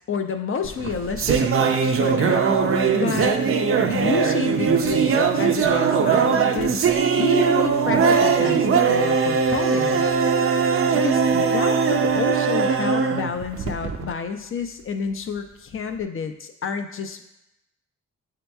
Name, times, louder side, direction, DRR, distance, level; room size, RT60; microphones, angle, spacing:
voice 1, 0.1-2.6 2.9-3.4 3.9-6.7 7.2-10.2 10.9-17.2, left 5 dB, 45° left, 6 dB, 0.5 m, -29 dB
sound 1, 0.6-14.1, right 6 dB, 50° right, 0.5 m, -20 dB
7.7 x 2.8 x 2.3 m, 0.85 s
cardioid pair, 80°, 29 cm